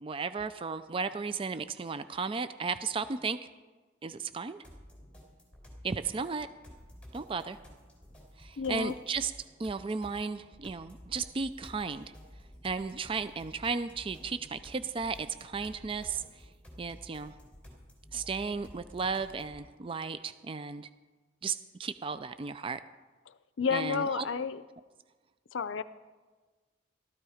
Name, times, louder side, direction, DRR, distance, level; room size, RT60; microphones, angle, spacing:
voice 1, 0.0-3.4 4.0-4.6 5.8-6.5 7.1-7.6 8.4-9.3 9.6-12.1 12.6-16.5 16.8-17.4 18.1-20.9 21.4-22.8 23.7-24.2, right 5 dB, 30° right, 12 dB, 0.4 m, -34 dB
sound 1, 4.6-19.6, equal, 5° left, 3.8 m, -53 dB
voice 2, 8.6-8.9 23.3-24.6 25.5-25.8, left 5 dB, 75° left, 15 dB, 0.5 m, -31 dB
15.5 x 13.5 x 4.9 m, 1.3 s
head